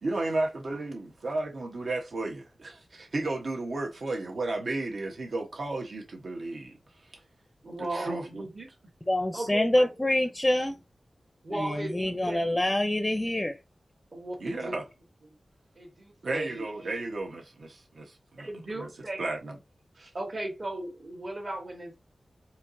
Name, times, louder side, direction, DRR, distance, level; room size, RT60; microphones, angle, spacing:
voice 1, 0.0-6.8 7.8-8.4 14.4-14.8 16.2-18.5 18.8-18.9 19.2-19.5 20.0-20.1, right 2 dB, 75° right, 1.0 m, -33 dB
voice 2, 7.6-8.7 9.3-9.9 11.4-12.4 14.1-14.7 15.7-16.6 18.4-19.3 20.1-22.0, right 1 dB, 55° right, 1.3 m, -36 dB
voice 3, 9.1-10.8 11.5-13.6, left 1 dB, 20° left, 0.5 m, -26 dB
4.5 x 2.8 x 2.6 m
wide cardioid pair, 85°, 0 cm